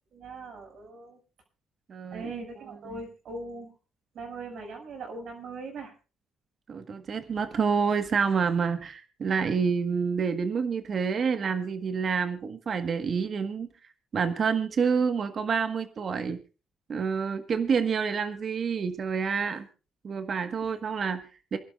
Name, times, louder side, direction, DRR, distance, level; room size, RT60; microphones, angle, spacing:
voice 1, 0.1-1.2 2.1-3.7 4.1-5.9 20.6-20.7, right 3 dB, 70° right, 4 dB, 6.3 m, -40 dB
voice 2, 1.9-2.2 6.7-13.7 14.1-16.4 16.9-19.7 20.0-21.6, right 6 dB, 50° right, 8 dB, 1.5 m, -28 dB
28.0 x 11.5 x 2.5 m, 0.34 s
cardioid pair, 90°, 0 cm